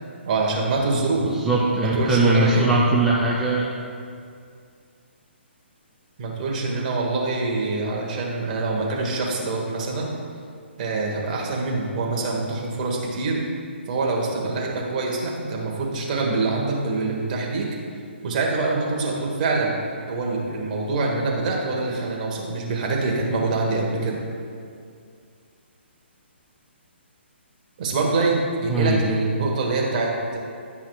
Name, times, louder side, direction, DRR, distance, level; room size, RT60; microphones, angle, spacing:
voice 1, 0.2-1.3 1.9-2.6 6.2-10.1 10.8-13.4 13.9-17.7 18.2-19.8 20.1-24.2 27.8-30.4, right 3 dB, 40° right, -1 dB, 1.3 m, -25 dB
voice 2, 1.2-3.7 28.7-29.0, right 2 dB, 5° right, -7 dB, 0.5 m, -20 dB
11.0 x 5.7 x 2.4 m, 2.3 s
hypercardioid pair, 150°, 6 cm